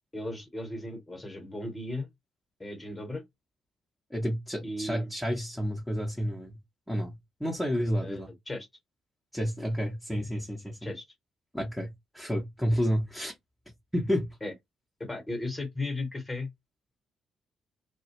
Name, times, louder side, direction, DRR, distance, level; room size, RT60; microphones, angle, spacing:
voice 1, 0.1-2.1 2.6-3.2 4.6-5.1 8.0-8.7 10.8-11.0 14.4-14.5 15.0-16.5, left 2 dB, 20° left, 1.1 m, -36 dB
voice 2, 4.1-6.6 6.9-8.3 9.3-10.9 11.5-13.3 13.9-14.3, equal, ahead, 0.9 m, -30 dB
2.1 x 2.1 x 3.0 m
figure-of-eight pair, 40°, 0 cm